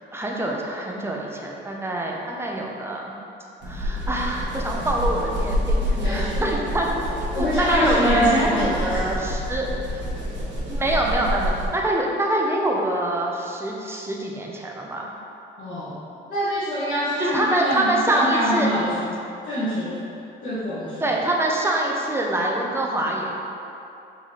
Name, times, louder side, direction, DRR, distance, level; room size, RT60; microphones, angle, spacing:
voice 1, 0.1-3.1 3.6-6.9 7.2-10.0 10.7-15.1 17.2-18.7 21.0-23.3, right 1 dB, 10° right, -1 dB, 0.6 m, -25 dB
sound 1, 3.6-11.9, equal, 65° right, 1.0 m, -27 dB
voice 2, 6.0-6.6 7.3-9.1 15.6-16.0 16.3-19.2 19.4-20.0 20.4-21.1, equal, 70° left, -13 dB, 1.5 m, -25 dB
4.1 x 3.8 x 3.1 m, 2.7 s
cardioid pair, 90°, 20 cm